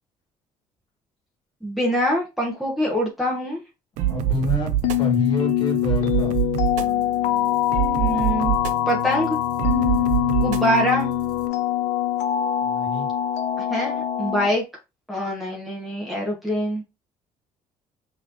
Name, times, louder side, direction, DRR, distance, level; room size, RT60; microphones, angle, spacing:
voice 1, 1.6-3.6 7.9-8.5 8.9-9.4 10.4-11.1 13.6-14.6 15.1-16.8, equal, ahead, 1.1 m, -24 dB
sound 1, 4.0-11.5, right 12 dB, 85° right, 0.5 m, -26 dB
voice 2, 4.1-6.3 12.6-13.1, left 2 dB, 40° left, 1.7 m, -27 dB
sound 2, 4.8-14.5, left 13 dB, 65° left, 0.5 m, -23 dB
5.7 x 3.1 x 2.6 m
cardioid pair, 170°, 13 cm